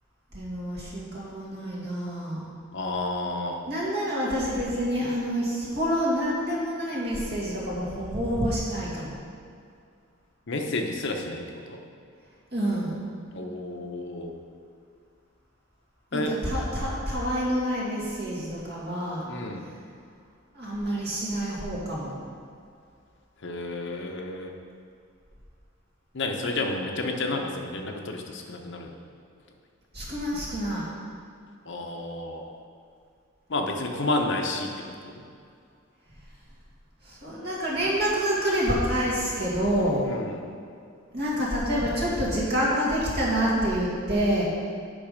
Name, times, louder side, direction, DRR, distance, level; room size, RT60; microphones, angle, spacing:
voice 1, 0.3-2.5 3.7-9.2 12.5-13.1 16.1-19.3 20.5-22.2 29.9-30.9 37.0-40.2 41.1-44.4, equal, 55° right, -6 dB, 2.3 m, -27 dB
voice 2, 2.7-3.6 10.5-11.8 13.3-14.3 16.1-16.4 19.3-19.7 23.4-24.5 26.1-28.9 31.7-32.5 33.5-35.2 40.1-40.5, left 2 dB, 60° left, 3 dB, 0.8 m, -31 dB
8.8 x 5.5 x 5.2 m, 2.4 s
head